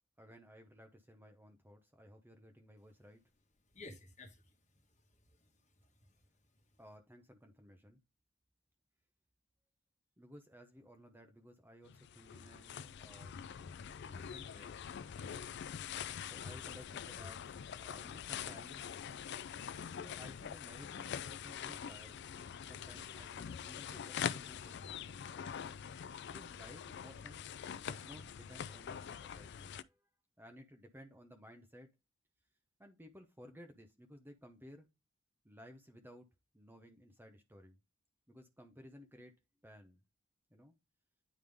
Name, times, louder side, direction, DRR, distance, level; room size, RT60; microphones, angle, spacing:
voice 1, 0.2-3.2 6.8-8.0 10.2-13.4 14.0-14.8 15.6-15.9 16.2-19.0 19.4-19.6 20.0-25.2 26.3-30.1 30.4-31.9 32.8-34.9 35.4-36.3 36.5-37.8 38.3-39.3 39.6-40.0 40.5-40.7, equal, 10° right, 0.8 m, -57 dB
voice 2, 3.7-6.2 6.5-6.6, left 2 dB, 35° left, 1.3 m, -56 dB
sound 1, 11.9-29.8, left 8 dB, 60° left, 0.4 m, -44 dB
9.5 x 3.5 x 3.4 m
head